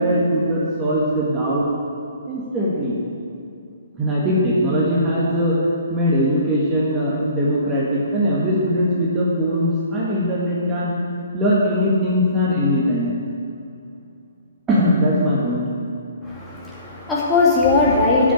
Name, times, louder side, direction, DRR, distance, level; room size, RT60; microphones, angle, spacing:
voice 1, 0.0-1.7 2.3-2.9 4.0-5.6 5.9-10.9 11.3-13.2 14.7-15.6, equal, 15° right, -7 dB, 1.7 m, -20 dB
voice 2, 16.2-18.3, left 3 dB, 5° left, -7 dB, 2.3 m, -18 dB
7.8 x 7.7 x 8.5 m, 2.5 s
figure-of-eight pair, 130°, 0 cm